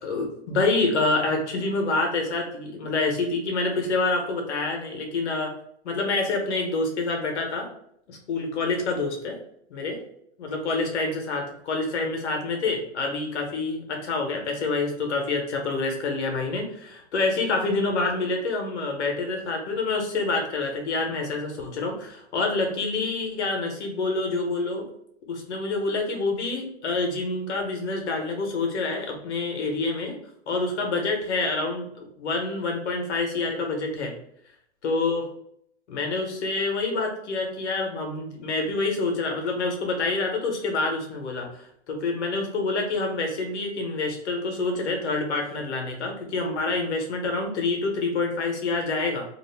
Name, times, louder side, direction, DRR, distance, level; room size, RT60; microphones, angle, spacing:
voice 1, 0.0-5.5 5.8-7.7 8.1-9.4 9.7-10.0 10.4-24.8 25.3-30.2 30.5-34.1 34.8-35.3 35.9-49.3, left 3 dB, 80° left, 2 dB, 1.0 m, -27 dB
2.5 x 2.4 x 3.4 m, 0.72 s
hypercardioid pair, 115°, 34 cm